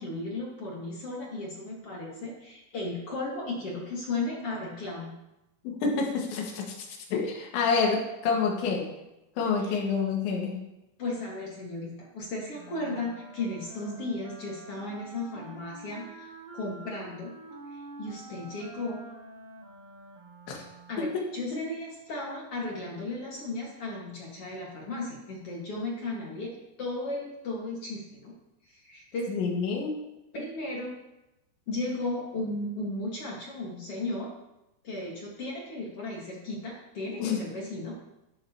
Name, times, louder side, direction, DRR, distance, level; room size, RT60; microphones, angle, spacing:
voice 1, 0.0-5.1 9.6-9.8 11.0-17.3 17.7-19.0 20.9-26.5 26.8-28.4 28.7-29.3 30.3-30.9 31.7-34.3 34.8-38.0, left 2 dB, 60° left, -3 dB, 1.5 m, -35 dB
voice 2, 5.7-8.9 9.4-10.6 20.5-20.6 21.0-21.1 29.3-29.9 37.2-37.4, left 5 dB, 85° left, 0 dB, 4.0 m, -28 dB
Wind instrument woodwind instrument, 12.5-21.2, right 2 dB, 55° right, 3.9 m, -47 dB
11.5 x 11.0 x 2.9 m, 0.94 s
omnidirectional pair, 5.2 m